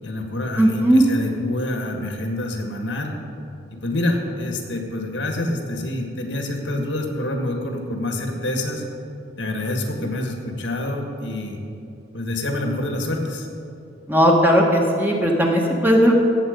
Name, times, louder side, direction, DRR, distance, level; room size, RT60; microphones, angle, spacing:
voice 1, 0.0-3.2 3.7-8.8 9.4-11.6 12.1-13.5, left 1 dB, 80° left, 3 dB, 1.7 m, -27 dB
voice 2, 0.6-1.1 14.1-16.1, equal, 10° right, 0 dB, 1.2 m, -17 dB
16.0 x 7.8 x 5.2 m, 2.6 s
head